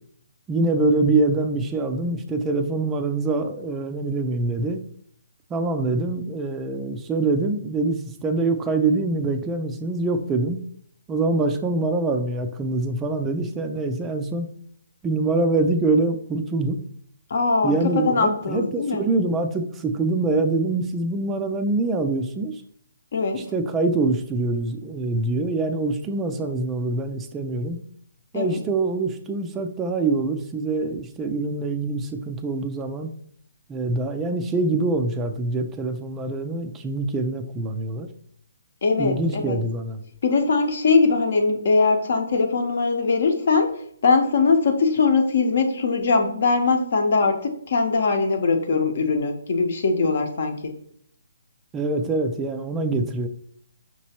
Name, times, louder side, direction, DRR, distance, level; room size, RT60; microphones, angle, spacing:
voice 1, 0.5-4.8 5.5-10.6 11.1-14.5 15.0-16.8 17.6-22.6 23.3-27.8 28.3-33.1 33.7-38.1 38.9-40.0 51.7-53.3, right 3 dB, 15° right, 7 dB, 0.3 m, -24 dB
voice 2, 17.3-19.0 23.1-23.5 28.3-28.6 38.8-39.6 40.2-43.7 44.0-50.7, left 4 dB, 55° left, 5 dB, 0.8 m, -21 dB
5.9 x 3.0 x 2.8 m, 0.66 s
figure-of-eight pair, 145°, 0 cm